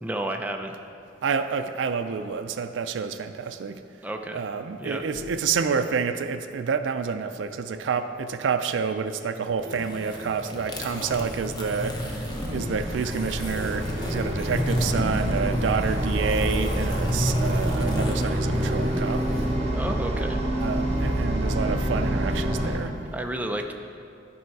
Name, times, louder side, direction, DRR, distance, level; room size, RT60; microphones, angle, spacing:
voice 1, 0.0-0.8 4.0-4.4 4.8-5.1 19.7-20.4 23.1-23.7, right 1 dB, 10° right, 4 dB, 0.5 m, -31 dB
voice 2, 1.2-3.8 4.3-19.3 20.6-23.0, right 5 dB, 90° right, 8 dB, 0.4 m, -29 dB
Vehicle horn car horn honking, 4.7-6.2 6.7-6.9 7.2-7.3 7.7-7.8 8.1-8.5 9.0-10.9 11.2-11.3 11.6-11.7 12.1-12.2 12.6-12.7 12.9-15.0 16.2-16.6, left 2 dB, 60° right, 1.0 m, -43 dB
sound 1, 9.6-19.5, left 1 dB, 25° left, 0.8 m, -32 dB
sound 2, 10.7-22.8, right 1 dB, 35° right, 1.0 m, -27 dB
10.0 x 5.6 x 4.6 m, 2.5 s
head